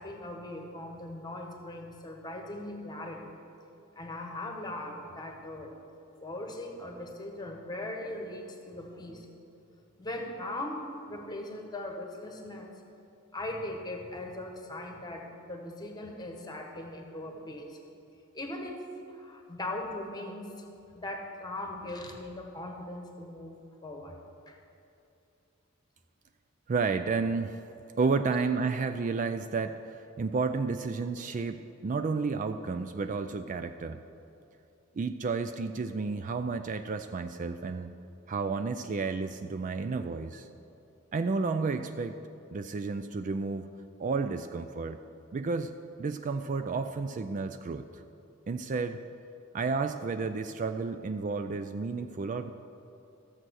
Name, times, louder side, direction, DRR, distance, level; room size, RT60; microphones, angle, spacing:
voice 1, 0.0-3.2 3.9-5.7 6.2-9.3 10.0-12.7 13.3-17.8 18.3-18.8 19.1-20.6 20.9-23.5 23.8-24.2 24.5-24.6, left 1 dB, 20° left, 2 dB, 1.3 m, -39 dB
voice 2, 26.7-27.6 28.0-34.0 35.0-37.9 38.3-40.5 41.1-42.2 42.5-43.7 44.0-45.0 45.3-48.0 48.5-49.0 49.5-52.5, right 4 dB, 35° right, 9 dB, 0.3 m, -31 dB
13.5 x 7.5 x 6.3 m, 2.7 s
head